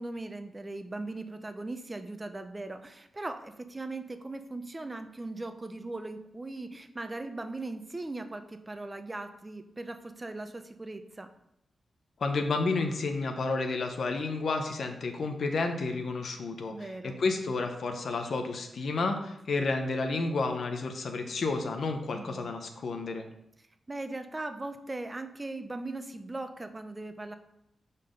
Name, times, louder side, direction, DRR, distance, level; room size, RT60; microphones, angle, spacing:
voice 1, 0.0-11.3 16.7-17.2 22.1-22.5 23.9-27.3, right 2 dB, 25° right, 8 dB, 0.6 m, -39 dB
voice 2, 12.2-23.3, left 3 dB, 70° left, 5 dB, 0.9 m, -31 dB
5.6 x 4.2 x 5.2 m, 0.80 s
cardioid pair, 65°, 0 cm